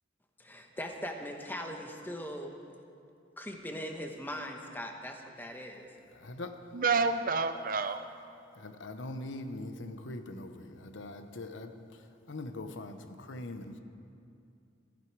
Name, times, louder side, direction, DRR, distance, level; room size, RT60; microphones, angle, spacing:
voice 1, 0.4-2.5 3.4-5.9, equal, 10° left, 3 dB, 1.1 m, -40 dB
voice 2, 6.2-6.5 8.6-11.7 12.3-13.8, left 2 dB, 85° left, 8 dB, 0.9 m, -42 dB
voice 3, 6.7-8.0, right 4 dB, 50° right, 10 dB, 0.6 m, -28 dB
15.5 x 12.0 x 4.7 m, 2.5 s
head